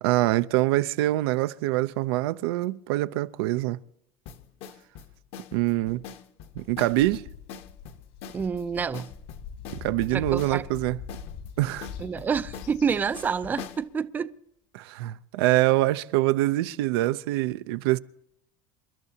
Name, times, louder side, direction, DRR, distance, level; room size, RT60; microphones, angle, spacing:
voice 1, 0.0-3.8 5.5-6.0 6.6-7.3 9.8-11.0 11.6-11.9 14.7-18.0, right 17 dB, 90° right, 0.6 m, -24 dB
sound 1, 4.3-13.9, left 7 dB, 50° left, 1.1 m, -43 dB
sound 2, 6.7-13.8, left 6 dB, 70° left, 3.0 m, -43 dB
voice 2, 8.3-9.1 10.1-10.6 12.0-14.3, right 6 dB, 15° right, 0.4 m, -28 dB
28.5 x 12.0 x 2.8 m
cardioid pair, 160°, 13 cm